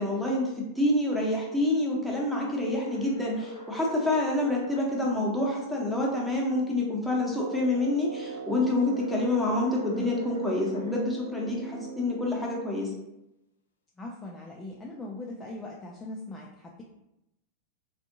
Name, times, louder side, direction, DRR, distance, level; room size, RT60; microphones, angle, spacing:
voice 1, 0.0-12.9, left 2 dB, ahead, -3 dB, 0.9 m, -27 dB
sound 1, 2.8-4.9 8.8-10.9, left 2 dB, 70° left, 0.5 m, -44 dB
Brass instrument, 7.2-12.8, right 5 dB, 75° right, 0.5 m, -40 dB
voice 2, 14.0-16.8, left 2 dB, 15° left, -3 dB, 0.4 m, -40 dB
3.4 x 2.5 x 2.7 m, 0.89 s
figure-of-eight pair, 90°, 0 cm